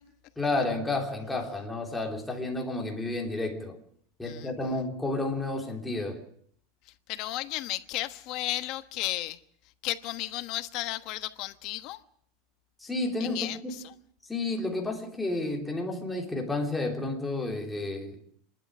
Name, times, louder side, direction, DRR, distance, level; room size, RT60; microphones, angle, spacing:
voice 1, 0.4-3.8 4.2-6.3 12.8-13.8 14.3-18.2, left 2 dB, 5° left, 3.3 m, -31 dB
voice 2, 6.9-9.4 9.8-12.0 13.2-13.9, left 16 dB, 45° left, 1.2 m, -34 dB
27.5 x 12.0 x 8.8 m
supercardioid pair, 160°, 0 cm